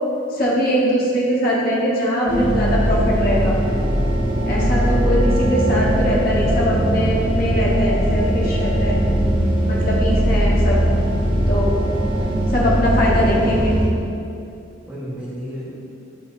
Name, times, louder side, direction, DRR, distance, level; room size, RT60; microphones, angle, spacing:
voice 1, 0.3-3.6 4.5-9.0 9.7-10.8 11.5-11.7 12.5-13.7, equal, 50° left, -5 dB, 1.3 m, -21 dB
sound 1, 2.3-13.9, equal, 25° right, 0.9 m, -19 dB
voice 2, 13.0-13.4 14.9-15.8, equal, 5° right, -11 dB, 1.3 m, -32 dB
8.6 x 5.4 x 2.7 m, 2.6 s
head